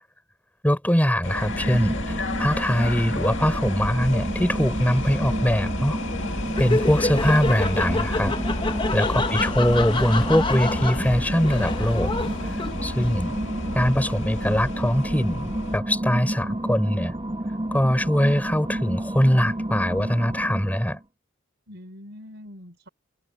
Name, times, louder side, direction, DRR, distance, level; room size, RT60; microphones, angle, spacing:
voice 1, 0.6-6.0 6.6-8.3 8.9-12.1 12.8-13.3 13.7-17.1 17.7-21.0, equal, 10° left, 4.7 m, -22 dB
sound 1, 1.2-15.8, left 2 dB, 70° left, 2.2 m, -31 dB
sound 2, 1.3-21.0, right 1 dB, 25° right, 1.6 m, -31 dB
Laughter, 6.5-13.1, left 3 dB, 25° left, 1.0 m, -28 dB
voice 2, 21.7-22.9, left 1 dB, 60° right, 4.4 m, -44 dB
head